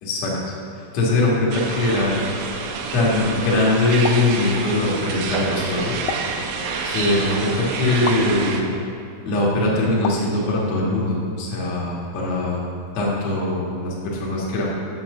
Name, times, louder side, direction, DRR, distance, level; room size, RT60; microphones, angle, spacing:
voice 1, 0.0-0.3 0.9-2.1 2.9-5.9 6.8-8.6 9.2-12.6 12.9-14.6, left 2 dB, 70° left, -5 dB, 1.6 m, -21 dB
sound 1, 1.5-8.6, right 5 dB, 80° right, 3.1 m, -28 dB
sound 2, 4.0-4.3 6.1-6.4 8.1-8.3 10.0-10.3, left 7 dB, 85° left, 2.6 m, -29 dB
7.2 x 5.8 x 6.5 m, 2.6 s
omnidirectional pair, 5.7 m